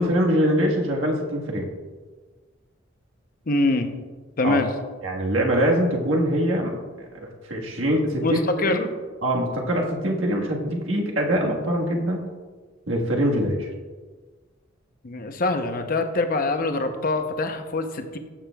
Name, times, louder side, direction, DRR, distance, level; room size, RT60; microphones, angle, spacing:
voice 1, 0.0-1.7 4.4-4.6 5.0-6.7 7.1-8.9 9.2-12.3 12.9-13.7, equal, 85° right, -1 dB, 1.5 m, -23 dB
voice 2, 3.5-3.9 4.4-4.7 8.2-8.9 15.0-18.2, left 2 dB, 45° left, 7 dB, 0.7 m, -24 dB
15.0 x 6.4 x 2.3 m, 1.4 s
head